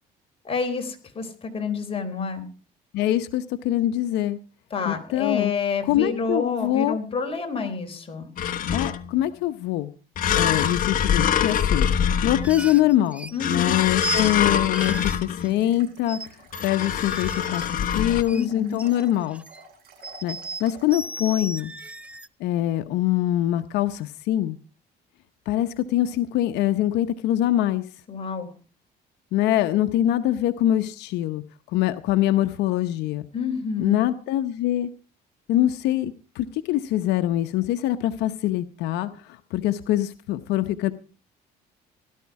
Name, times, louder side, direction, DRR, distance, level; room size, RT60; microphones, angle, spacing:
voice 1, 0.4-2.5 4.7-8.3 13.3-13.8 18.3-18.8 28.1-28.5 33.3-34.1, left 5 dB, 35° left, 4 dB, 3.8 m, -28 dB
voice 2, 2.9-4.4 4.8-5.5 5.8-7.0 8.7-9.9 10.4-11.9 12.2-16.2 16.6-17.6 18.0-19.4 20.2-21.7 22.4-24.6 25.5-27.8 29.3-31.4 31.7-33.3 33.8-34.9 35.5-40.9, left 13 dB, 85° left, 10 dB, 0.9 m, -24 dB
sound 1, 8.4-9.2 10.2-12.8 13.4-15.6 16.5-18.2, left 8 dB, 55° left, 1.2 m, -24 dB
sound 2, 12.4-13.4 14.0-14.4 14.7-15.8 16.1-16.3 16.5-18.4 18.7-19.6 20.0-22.3, right 3 dB, 5° right, 0.7 m, -36 dB
sound 3, 13.5-21.4, right 3 dB, 60° right, 6.2 m, -50 dB
17.5 x 12.0 x 4.7 m, 0.37 s
cardioid pair, 110°, 17 cm